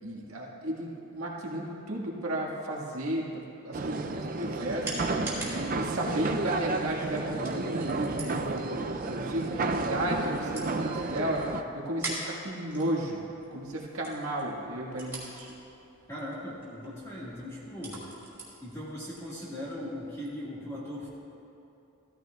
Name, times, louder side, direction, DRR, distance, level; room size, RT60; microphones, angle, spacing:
voice 1, 0.0-5.1 5.6-13.2 13.5-15.5, right 1 dB, 75° right, -3 dB, 1.7 m, -34 dB
sound 1, 3.7-11.6, right 3 dB, 40° right, 0.4 m, -32 dB
sound 2, 4.0-20.4, right 2 dB, 10° right, 2.8 m, -45 dB
voice 2, 16.1-18.0 18.6-21.1, left 1 dB, 15° left, -7 dB, 1.8 m, -39 dB
16.0 x 14.0 x 2.4 m, 2.8 s
head